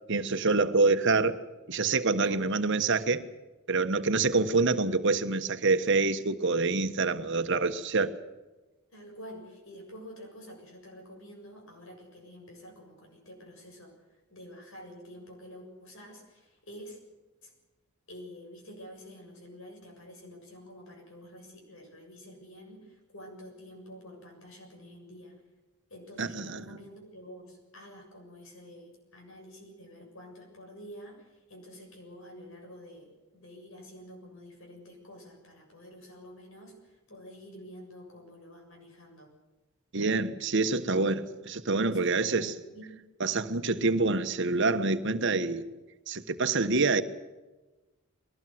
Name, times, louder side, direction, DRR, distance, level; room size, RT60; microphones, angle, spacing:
voice 1, 0.1-1.4 1.7-3.2 3.7-8.1 26.2-26.6 39.9-42.5 43.2-45.7 46.1-47.0, right 3 dB, 55° right, 1.3 m, -26 dB
voice 2, 2.1-2.7 8.9-17.0 17.4-17.5 18.1-25.4 25.9-39.3 41.8-43.0, equal, 65° left, 7.2 m, -48 dB
22.5 x 18.5 x 7.9 m
head